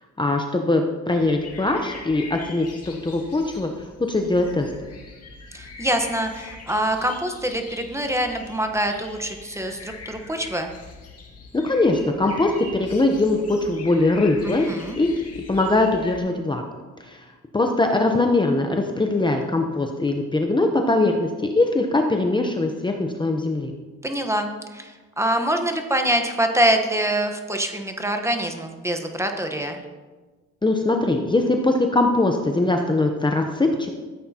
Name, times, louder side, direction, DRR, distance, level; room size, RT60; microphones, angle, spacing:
voice 1, 0.2-3.7 4.1-4.7 11.5-14.7 15.0-15.1 15.5-16.6 17.0-17.2 17.5-23.7 30.6-34.0, left 2 dB, 15° left, 3 dB, 0.8 m, -21 dB
sound 1, 1.1-16.2, left 4 dB, 55° left, 2.1 m, -42 dB
voice 2, 5.5-10.7 14.4-15.0 24.0-29.8, right 1 dB, 10° right, 5 dB, 1.1 m, -25 dB
14.0 x 8.3 x 2.9 m, 1.3 s
cardioid pair, 90°, 30 cm